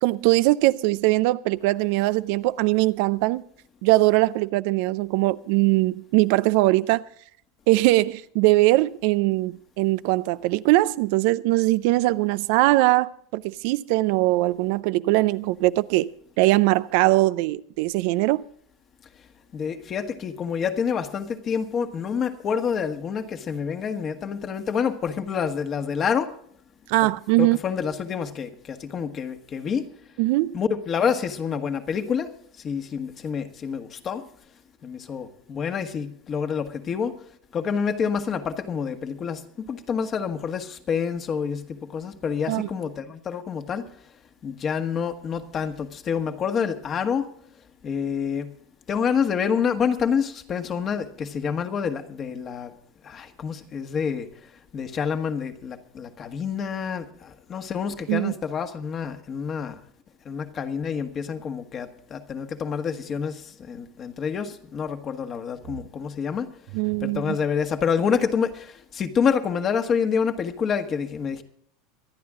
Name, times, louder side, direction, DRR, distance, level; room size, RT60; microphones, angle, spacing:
voice 1, 0.0-3.4 3.8-7.0 7.7-16.1 16.4-18.4 26.9-27.6 30.2-30.6 42.5-42.7 58.1-58.3 66.7-67.4, right 19 dB, 65° right, 0.5 m, -21 dB
voice 2, 19.5-26.3 27.4-29.8 30.5-32.3 32.6-34.2 34.8-37.1 37.5-43.9 44.4-47.3 47.8-48.5 48.9-52.7 53.0-54.3 54.7-59.8 60.2-66.5 67.0-71.4, left 6 dB, 35° left, 1.6 m, -27 dB
25.0 x 9.5 x 3.7 m
hypercardioid pair, 105°, 0 cm